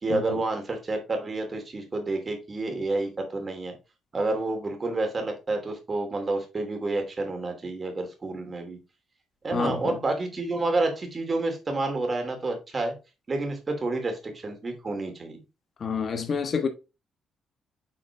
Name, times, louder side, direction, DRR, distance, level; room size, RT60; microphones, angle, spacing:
voice 1, 0.0-3.7 4.1-8.8 9.4-12.9 13.3-15.4, right 2 dB, 35° right, 2.6 m, -29 dB
voice 2, 9.5-9.9 15.8-16.7, left 5 dB, 45° left, 1.3 m, -28 dB
7.6 x 4.2 x 3.4 m
cardioid pair, 90°, 0 cm